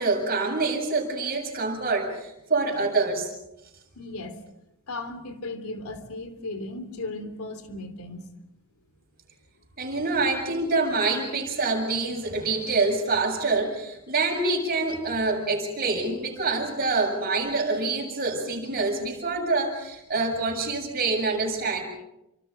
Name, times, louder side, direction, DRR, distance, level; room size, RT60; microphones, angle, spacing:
voice 1, 0.0-3.3 9.8-21.8, right 3 dB, 45° right, 2 dB, 7.4 m, -26 dB
voice 2, 3.9-4.4 4.9-8.2, left 2 dB, 80° left, 9 dB, 3.2 m, -36 dB
29.5 x 26.0 x 5.1 m, 0.89 s
head